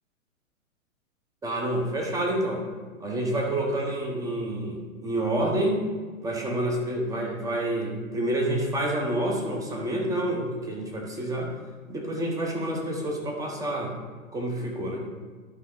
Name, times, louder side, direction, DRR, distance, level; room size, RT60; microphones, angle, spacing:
voice 1, 1.4-2.6 3.0-5.8 6.2-11.5 11.9-13.9 14.3-15.0, right 1 dB, 10° right, 0 dB, 1.1 m, -28 dB
11.5 x 5.5 x 3.9 m, 1.4 s
hypercardioid pair, 135°, 42 cm